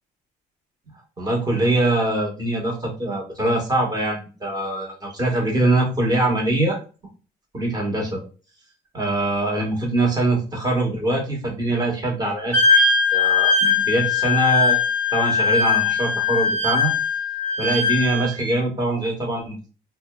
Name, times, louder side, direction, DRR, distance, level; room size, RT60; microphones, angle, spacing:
voice 1, 1.2-6.8 7.5-8.2 8.9-12.8 13.1-14.8 15.1-16.9 17.6-19.7, right 1 dB, 25° right, -1 dB, 1.1 m, -23 dB
Wind instrument woodwind instrument, 12.5-18.5, left 5 dB, 10° left, 0.7 m, -20 dB
2.5 x 2.2 x 2.3 m, 0.34 s
cardioid pair, 110°, 17 cm